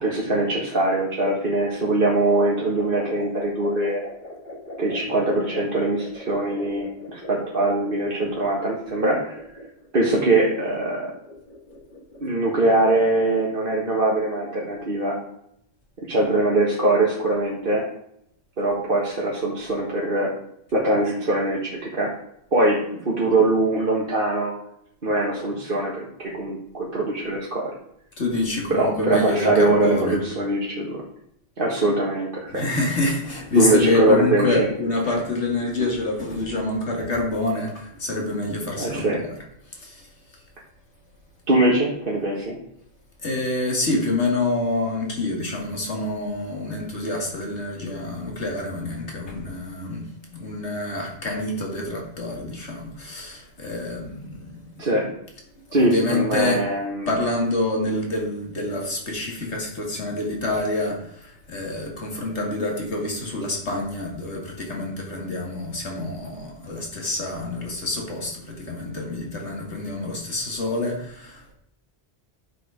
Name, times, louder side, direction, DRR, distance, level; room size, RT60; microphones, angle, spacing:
voice 1, 0.0-4.0 4.8-9.4 9.9-11.1 12.2-15.2 16.1-17.9 18.6-20.3 20.7-22.1 22.5-24.5 25.0-27.7 28.7-31.0 31.6-32.7 33.6-34.7 38.8-39.2 41.5-42.6 54.8-55.1 55.7-57.1, right 2 dB, 55° right, -3 dB, 1.7 m, -22 dB
sound 1, 2.8-12.4, left 1 dB, 45° left, 2.5 m, -41 dB
voice 2, 28.2-30.2 32.5-39.3 39.7-40.4 43.2-54.6 55.7-56.6 57.1-71.5, left 2 dB, 90° left, 0 dB, 2.7 m, -27 dB
11.0 x 6.5 x 5.1 m, 0.75 s
omnidirectional pair, 1.1 m